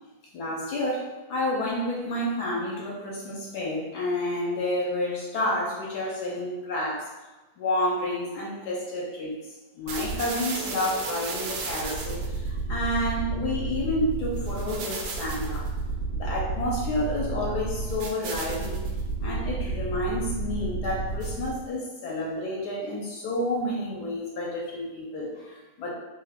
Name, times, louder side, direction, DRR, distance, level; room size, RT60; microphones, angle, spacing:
voice 1, 0.3-7.1 7.6-9.4 9.8-15.6 16.1-18.9 19.2-25.9, left 1 dB, 75° left, -4 dB, 1.2 m, -30 dB
sound 1, 9.9-21.7, right 3 dB, 85° right, 1.2 m, -32 dB
3.1 x 2.3 x 3.4 m, 1.1 s
omnidirectional pair, 1.8 m